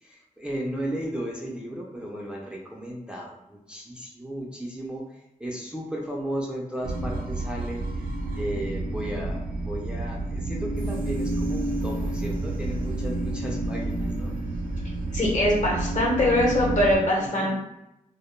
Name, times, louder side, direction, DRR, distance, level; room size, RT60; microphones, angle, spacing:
voice 1, 0.0-8.1 8.3-14.3 17.2-17.6, right 1 dB, 5° right, -2 dB, 0.3 m, -35 dB
sound 1, 6.8-17.0, right 2 dB, 90° right, 0.5 m, -29 dB
voice 2, 15.1-17.6, left 1 dB, 60° left, -4 dB, 0.9 m, -22 dB
2.1 x 2.1 x 2.9 m, 0.87 s
wide cardioid pair, 95°, 14 cm